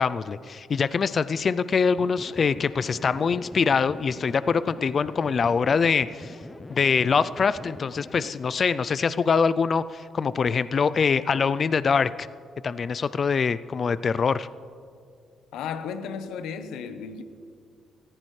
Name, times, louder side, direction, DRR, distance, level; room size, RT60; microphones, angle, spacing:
voice 1, 0.0-6.4 6.7-12.3 12.6-14.5, left 5 dB, 45° left, 0.3 m, -24 dB
sound 1, 2.0-8.3, left 2 dB, 20° left, 0.7 m, -43 dB
voice 2, 15.5-17.2, left 6 dB, 85° left, 0.8 m, -34 dB
18.5 x 14.5 x 3.2 m
cardioid pair, 90°, 0 cm